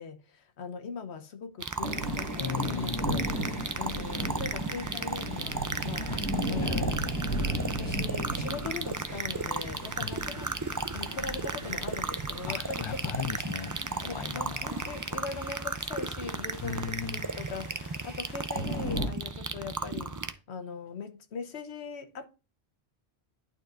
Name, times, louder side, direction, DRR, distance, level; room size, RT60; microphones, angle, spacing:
voice 1, 0.0-6.2 6.5-7.3 7.8-10.5 10.9-13.0 14.0-22.3, left 5 dB, 90° left, 1.2 m, -40 dB
sound 1, 1.6-20.3, right 4 dB, 30° right, 0.3 m, -35 dB
sound 2, 1.8-19.1, equal, 20° left, 1.4 m, -36 dB
voice 2, 2.4-3.5 6.1-6.3 6.6-7.0 10.0-10.2 12.5-14.9 16.6-17.3, left 7 dB, 45° left, 0.3 m, -37 dB
11.5 x 4.3 x 2.5 m
omnidirectional pair, 1.1 m